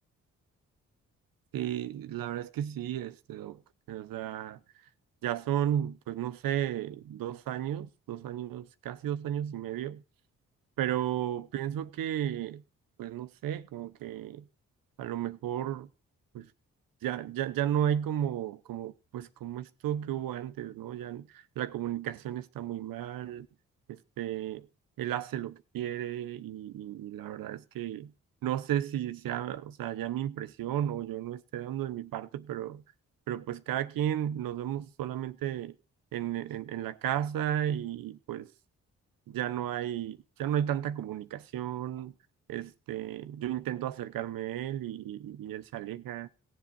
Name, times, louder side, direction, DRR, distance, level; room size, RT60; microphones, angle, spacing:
voice 1, 1.5-3.6 3.9-4.6 5.2-10.0 10.8-12.6 13.0-14.4 15.0-15.9 16.3-16.5 17.0-23.5 23.9-24.7 25.0-28.1 28.4-32.8 33.3-35.7 36.1-38.5 39.3-42.1 42.5-46.3, right 11 dB, 75° right, 1.0 m, -34 dB
17.5 x 7.6 x 4.0 m
hypercardioid pair, 40°, 35 cm